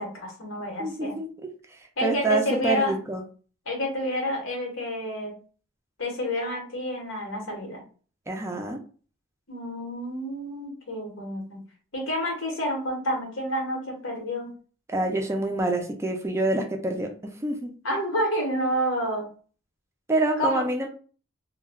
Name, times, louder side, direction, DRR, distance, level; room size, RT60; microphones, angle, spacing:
voice 1, 0.0-1.2 2.0-3.0 3.7-5.3 6.0-7.8 9.5-11.6 11.9-14.5 17.8-19.3 20.4-20.7, equal, 75° left, 1 dB, 1.0 m, -29 dB
voice 2, 0.8-1.5 2.0-3.2 8.3-8.8 14.9-17.1 17.4-17.7 20.1-20.9, right 2 dB, 15° right, 3 dB, 0.3 m, -26 dB
2.2 x 2.2 x 3.3 m, 0.39 s
head